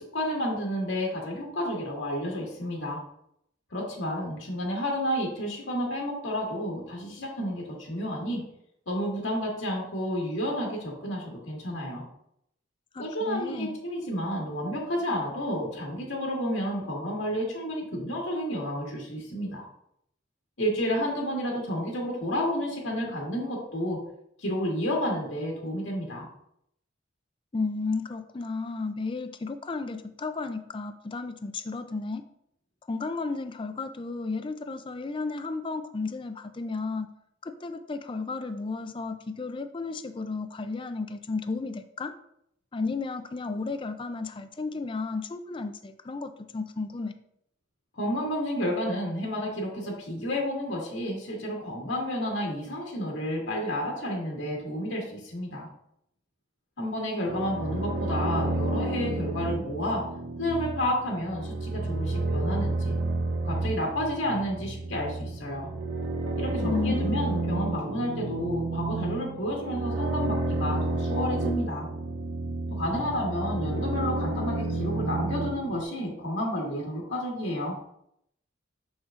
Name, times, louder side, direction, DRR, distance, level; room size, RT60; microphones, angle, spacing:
voice 1, 0.0-3.0 3.7-8.4 8.9-12.0 13.0-19.6 20.6-24.0 24.4-26.3 47.9-55.7 56.8-60.0 60.4-62.9 63.4-65.7 66.4-71.9 72.7-77.7, equal, 80° left, -2 dB, 1.9 m, -31 dB
voice 2, 12.9-13.8 27.5-32.2 32.9-37.1 37.4-42.1 42.7-47.1 66.6-67.2, left 3 dB, 25° left, 9 dB, 0.4 m, -33 dB
sound 1, 57.2-75.8, right 2 dB, 85° right, 0.8 m, -31 dB
6.4 x 6.2 x 2.5 m, 0.74 s
head